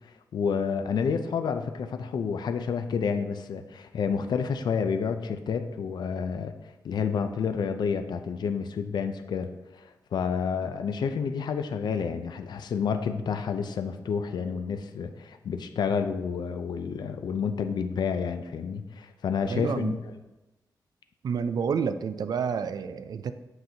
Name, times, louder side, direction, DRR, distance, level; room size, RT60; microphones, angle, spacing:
voice 1, 0.0-6.5 6.8-20.0, left 6 dB, 80° left, 8 dB, 0.4 m, -29 dB
voice 2, 19.5-20.0 21.2-23.3, right 6 dB, 65° right, 11 dB, 0.4 m, -29 dB
7.7 x 5.8 x 2.8 m, 1.1 s
wide cardioid pair, 150°, 7 cm